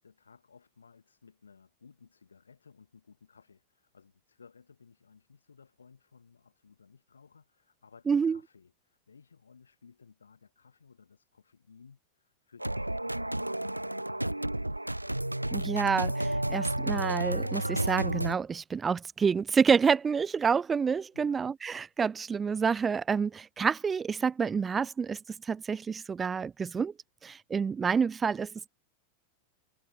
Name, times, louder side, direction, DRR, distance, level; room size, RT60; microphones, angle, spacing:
voice 1, 0.0-14.7 21.1-21.4, left 5 dB, 75° left, 3.7 m, -58 dB
voice 2, 8.1-8.4 15.5-26.9 27.2-28.7, right 6 dB, 20° right, 0.5 m, -28 dB
sound 1, 12.6-18.4, right 1 dB, 85° right, 0.9 m, -31 dB
figure-of-eight pair, 90°, 0 cm